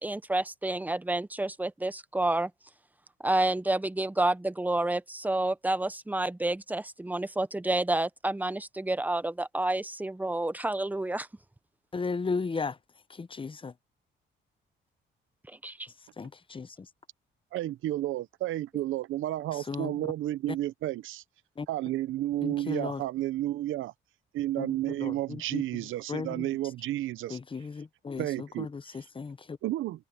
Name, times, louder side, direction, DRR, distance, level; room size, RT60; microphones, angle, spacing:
voice 1, 0.0-2.5 3.2-11.3 15.5-15.9, right 2 dB, 10° right, 0.9 m, -29 dB
voice 2, 11.9-12.8 13.1-13.7 16.2-16.7 19.7-19.9 21.6-21.7 22.4-23.0 24.6-24.7 25.0-25.6 26.1-26.5 27.3-29.6, left 4 dB, 25° left, 0.8 m, -35 dB
voice 3, 17.5-21.2 21.7-23.9 24.3-27.4 28.2-28.7 29.6-30.0, right 14 dB, 80° right, 0.8 m, -31 dB
cardioid pair, 90°, 20 cm